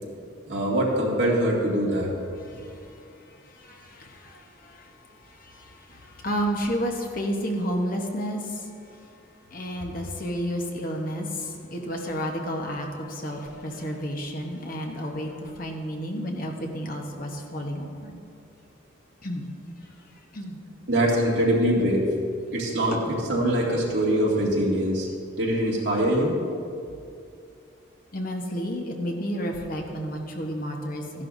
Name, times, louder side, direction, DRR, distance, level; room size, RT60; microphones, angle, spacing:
voice 1, 0.5-2.1 20.9-22.1 22.5-25.1 25.4-26.4, right 1 dB, 65° right, -4 dB, 2.3 m, -23 dB
voice 2, 2.5-2.8 3.4-4.9 5.2-8.6 9.5-18.1 19.2-19.5 20.3-20.6 22.9-23.0 28.1-31.3, equal, 45° left, 2 dB, 1.0 m, -31 dB
14.5 x 11.0 x 2.7 m, 2.4 s
head